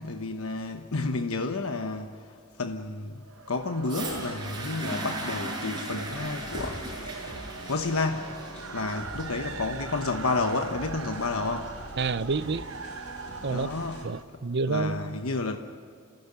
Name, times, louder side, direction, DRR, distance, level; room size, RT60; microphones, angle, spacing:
voice 1, 0.0-2.1 2.6-3.2 3.5-6.8 7.7-8.4 8.7-11.7 13.5-14.1 14.7-15.6, left 3 dB, 80° left, 1.2 m, -30 dB
sound 1, 3.2-14.2, right 5 dB, 70° right, 1.1 m, -42 dB
sound 2, 3.8-11.8 12.7-12.8, right 1 dB, 20° right, 7.1 m, -38 dB
sound 3, 6.1-14.1, left 1 dB, 50° left, 3.8 m, -44 dB
voice 2, 12.0-12.7 13.4-13.7 14.0-15.2, right 4 dB, 55° right, 0.7 m, -29 dB
29.0 x 16.0 x 9.9 m
head